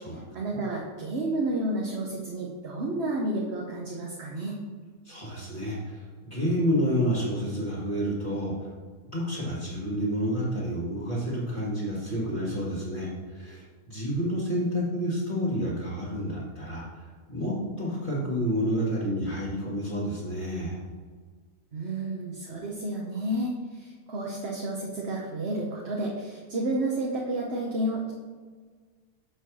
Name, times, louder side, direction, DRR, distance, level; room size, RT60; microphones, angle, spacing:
voice 1, 0.3-4.6 21.7-28.1, right 1 dB, 45° right, -2 dB, 1.1 m, -31 dB
voice 2, 5.1-8.7 9.1-16.9 17.3-20.8, equal, 35° left, -6 dB, 1.8 m, -29 dB
6.5 x 4.6 x 6.1 m, 1.5 s
omnidirectional pair, 1.6 m